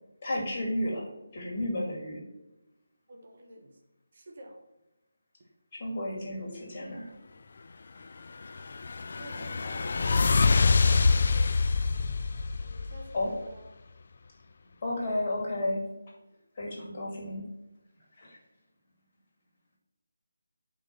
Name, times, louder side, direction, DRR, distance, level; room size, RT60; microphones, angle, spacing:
voice 1, 0.2-1.1 1.3-2.2 5.7-7.1 13.1-13.3 14.8-15.8 16.6-17.4 18.2-18.4, left 1 dB, 35° left, -3 dB, 2.2 m, -32 dB
voice 2, 3.1-3.8 4.1-4.6 9.2-11.6 12.6-13.7, right 1 dB, 50° right, 1 dB, 1.4 m, -49 dB
sound 1, 8.4-13.4, left 4 dB, 50° left, 0.3 m, -25 dB
5.5 x 4.5 x 5.9 m, 0.97 s
figure-of-eight pair, 155°, 0 cm